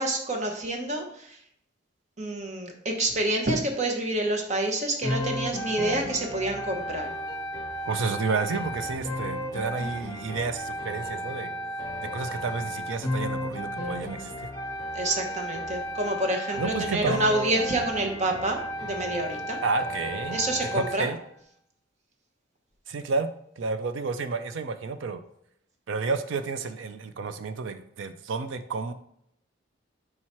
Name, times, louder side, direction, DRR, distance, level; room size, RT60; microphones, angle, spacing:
voice 1, 0.0-1.4 2.2-7.1 14.9-19.6 20.3-21.1, right 1 dB, 40° right, 3 dB, 0.9 m, -28 dB
sound 1, 5.0-21.1, equal, 20° left, 1.1 m, -34 dB
voice 2, 7.9-11.5 12.1-14.5 16.6-17.3 19.6-20.4 20.7-21.2 22.9-23.3 23.6-25.2 25.9-28.9, right 4 dB, 75° right, 10 dB, 0.5 m, -30 dB
4.7 x 4.6 x 4.3 m, 0.71 s
head